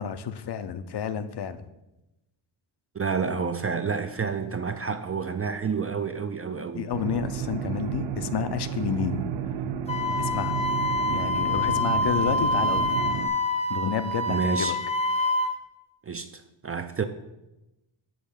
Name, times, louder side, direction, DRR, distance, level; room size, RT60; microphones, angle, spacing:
voice 1, 0.0-1.7 6.8-9.3 10.2-10.6 11.1-12.9 13.7-14.8, left 8 dB, 55° left, 0.6 m, -30 dB
voice 2, 2.9-6.9 14.3-14.8 16.0-17.1, right 5 dB, 30° right, 0.4 m, -29 dB
sound 1, 6.9-13.3, right 8 dB, 70° right, 0.6 m, -32 dB
Wind instrument woodwind instrument, 9.9-15.5, left 2 dB, 15° left, 0.6 m, -26 dB
8.7 x 4.1 x 7.1 m
wide cardioid pair, 135°, 49 cm